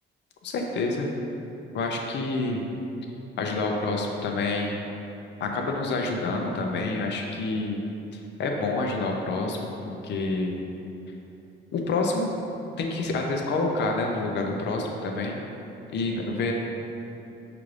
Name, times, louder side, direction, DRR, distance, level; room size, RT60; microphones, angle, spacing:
voice 1, 0.4-1.1 1.7-2.6 3.4-4.8 5.4-7.8 8.1-10.6 11.7-12.3 12.8-15.4 15.9-16.5, left 3 dB, 60° left, 1 dB, 0.5 m, -28 dB
5.7 x 2.5 x 3.2 m, 2.9 s
cardioid pair, 90°, 20 cm